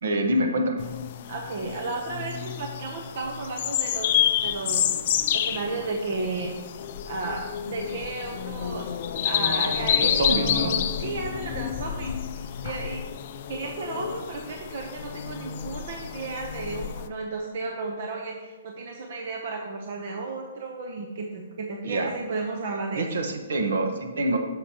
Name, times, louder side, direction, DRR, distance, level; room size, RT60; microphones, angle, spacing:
voice 1, 0.0-0.8 10.0-10.7 21.8-22.1 22.9-24.4, right 1 dB, 70° right, 4 dB, 1.2 m, -26 dB
sound 1, 0.8-17.1, left 10 dB, 35° left, 0.4 m, -29 dB
voice 2, 1.3-4.1 4.4-5.0 5.3-6.5 7.1-8.9 9.2-13.0 13.5-23.1, right 3 dB, 50° right, 2 dB, 0.8 m, -33 dB
9.9 x 6.6 x 2.9 m, 1.3 s
hypercardioid pair, 170°, 0 cm